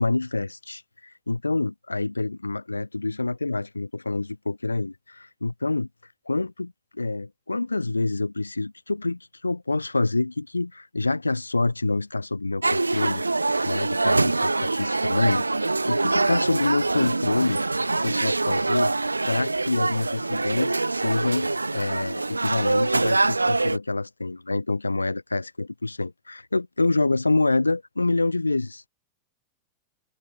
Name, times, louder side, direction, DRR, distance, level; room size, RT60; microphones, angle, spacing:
voice 1, 0.0-5.9 6.3-17.6 18.0-18.9 19.3-28.8, left 3 dB, 80° left, 6.1 m, -27 dB
sound 1, 12.6-23.8, right 3 dB, 80° right, 1.5 m, -24 dB
figure-of-eight pair, 90°, 0 cm